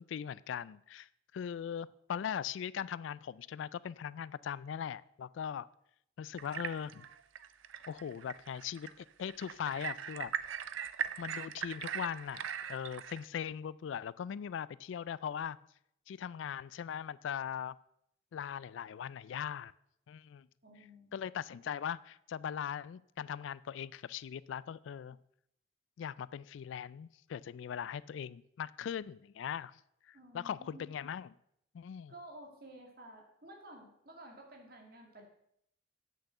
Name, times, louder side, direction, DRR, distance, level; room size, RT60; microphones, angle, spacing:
voice 1, 0.0-5.7 6.2-7.1 7.9-10.3 11.2-15.6 16.1-17.8 18.3-19.7 20.1-20.5 21.1-25.2 26.0-29.8 30.1-31.3 31.7-32.1, left 8 dB, 70° left, 20 dB, 0.3 m, -40 dB
sound 1, 6.4-13.2, right 8 dB, 80° right, 0.5 m, -40 dB
voice 2, 20.6-21.2 30.1-30.9 32.1-35.3, right 1 dB, 50° right, 1 dB, 2.3 m, -53 dB
8.3 x 6.5 x 6.6 m, 0.73 s
head